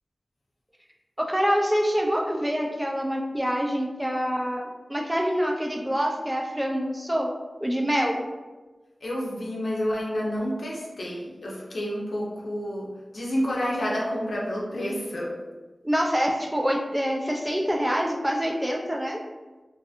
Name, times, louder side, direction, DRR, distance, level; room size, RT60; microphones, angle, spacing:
voice 1, 1.2-7.3 7.6-8.2 15.8-19.2, equal, 15° right, 0 dB, 0.4 m, -26 dB
voice 2, 9.0-15.3, equal, 80° left, -4 dB, 0.6 m, -29 dB
2.6 x 2.5 x 2.4 m, 1.2 s
wide cardioid pair, 60°, 0 cm